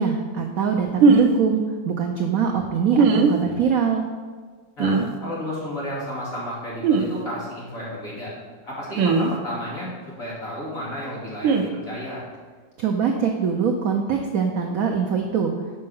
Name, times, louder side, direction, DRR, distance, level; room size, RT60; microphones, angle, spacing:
voice 1, 0.0-4.0 12.8-15.5, right 6 dB, 70° right, 3 dB, 0.8 m, -23 dB
sound 1, 1.0-1.3 3.0-3.3 4.8-5.1 6.8-7.1 9.0-9.3 11.4-11.6, right 4 dB, 85° right, 1.5 m, -17 dB
voice 2, 4.8-8.3 8.6-9.9 10.2-11.5 11.8-12.2, equal, 45° left, -7 dB, 2.8 m, -32 dB
6.7 x 5.3 x 5.5 m, 1.5 s
omnidirectional pair, 2.1 m